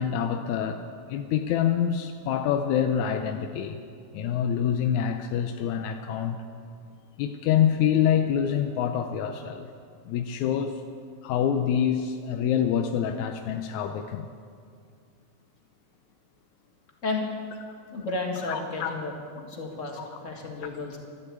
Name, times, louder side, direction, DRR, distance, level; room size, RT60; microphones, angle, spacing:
voice 1, 0.0-3.8 4.1-6.4 7.2-9.7 10.1-10.8 11.2-14.3 18.5-19.0 20.0-20.1, left 9 dB, 75° left, 6 dB, 1.8 m, -26 dB
voice 2, 17.9-21.0, left 3 dB, 30° left, 1 dB, 1.6 m, -32 dB
13.5 x 12.0 x 8.4 m, 2.2 s
omnidirectional pair, 3.8 m